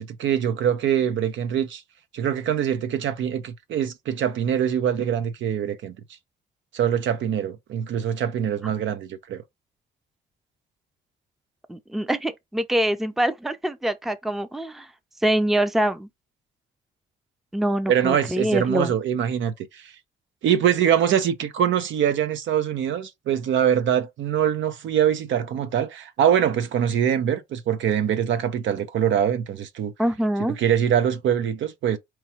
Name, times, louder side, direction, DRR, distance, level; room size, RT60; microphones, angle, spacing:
voice 1, 0.0-1.8 2.1-5.9 6.7-9.4 17.9-19.9 20.4-29.9 30.6-32.0, right 9 dB, 70° right, 0.7 m, -23 dB
voice 2, 11.7-14.9 15.2-16.1 17.5-18.9 30.0-30.6, right 1 dB, ahead, 0.5 m, -24 dB
4.5 x 3.1 x 2.9 m
cardioid pair, 90°, 20 cm